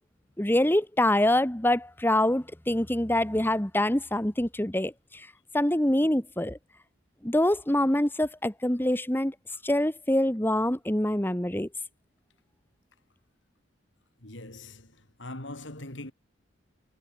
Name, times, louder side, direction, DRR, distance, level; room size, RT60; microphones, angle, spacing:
voice 1, 0.4-5.3 5.5-6.6 7.2-9.3 9.6-11.7, left 1 dB, 10° left, 1.4 m, -25 dB
voice 2, 14.2-16.1, left 1 dB, 75° left, 5.0 m, -42 dB
head